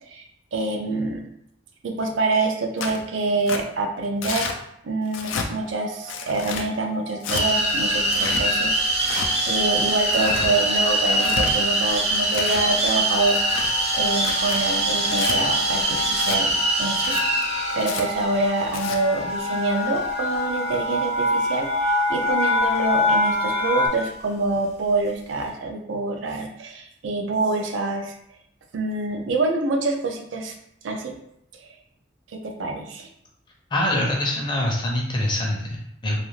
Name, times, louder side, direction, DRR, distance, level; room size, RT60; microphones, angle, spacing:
voice 1, 0.5-1.2 1.8-4.5 4.8-13.7 13.9-16.5 16.8-17.2 17.4-28.2 28.7-30.5 30.8-31.2 31.6-31.7 32.3-33.1, right 3 dB, 85° right, 3 dB, 0.4 m, -26 dB
Tearing, 2.8-3.0 3.5-3.6 4.2-4.6 5.1-5.5 6.1-6.7 7.2-7.4 8.0-8.4 9.0-9.3 10.0-10.5 11.1-11.5 12.1-12.7 13.2-13.7 14.2-14.6 15.1-15.4 16.1-16.4 16.9-17.2 17.8-18.0 18.6-19.0, left 5 dB, 90° left, 0.4 m, -31 dB
sound 1, 5.7-6.2 7.0-7.3 7.6-7.9 8.1-23.9, left 2 dB, 70° left, 0.7 m, -28 dB
sound 2, 7.3-20.9, right 1 dB, 35° right, 0.5 m, -24 dB
voice 2, 33.7-36.2, left 1 dB, 25° left, -1 dB, 0.5 m, -24 dB
2.4 x 2.4 x 3.1 m, 0.74 s
head